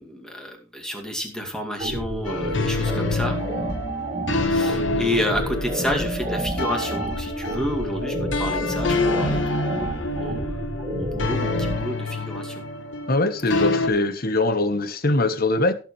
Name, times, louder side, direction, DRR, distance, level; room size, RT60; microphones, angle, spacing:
voice 1, 0.0-3.4 4.5-10.5 10.9-12.6 13.5-13.6, left 1 dB, 5° left, 2.3 m, -30 dB
sound 1, 1.8-11.8, right 1 dB, 25° right, 1.9 m, -29 dB
sound 2, 2.2-13.9, left 3 dB, 65° left, 1.2 m, -27 dB
voice 2, 13.1-15.7, left 2 dB, 50° left, 1.2 m, -22 dB
17.0 x 7.5 x 3.2 m
head